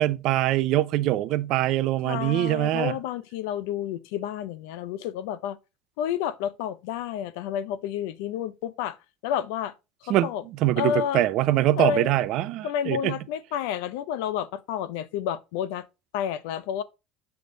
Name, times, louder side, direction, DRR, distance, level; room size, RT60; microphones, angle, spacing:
voice 1, 0.0-2.9 10.1-13.2, right 15 dB, 55° right, 0.5 m, -23 dB
voice 2, 2.0-5.6 6.0-9.0 9.2-9.7 10.0-10.4 10.8-11.2 11.8-12.2 12.6-15.9 16.1-16.8, left 9 dB, 85° left, 0.6 m, -30 dB
7.8 x 3.5 x 3.9 m
cardioid pair, 150°, 0 cm